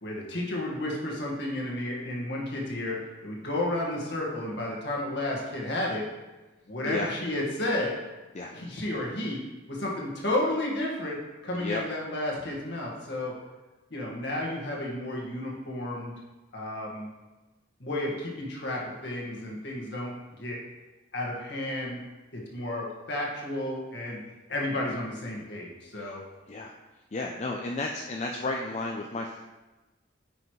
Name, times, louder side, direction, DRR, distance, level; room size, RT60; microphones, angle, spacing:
voice 1, 0.0-3.0 3.2-6.0 6.7-7.9 8.5-9.4 9.7-11.2 11.4-13.3 13.9-16.1 16.5-17.1 17.8-20.6 21.1-22.0 22.3-24.2 24.5-26.2, left 1 dB, 60° left, -2 dB, 1.8 m, -32 dB
voice 2, 27.1-29.4, left 2 dB, 35° left, 1 dB, 0.4 m, -33 dB
9.1 x 5.7 x 3.2 m, 1.1 s
head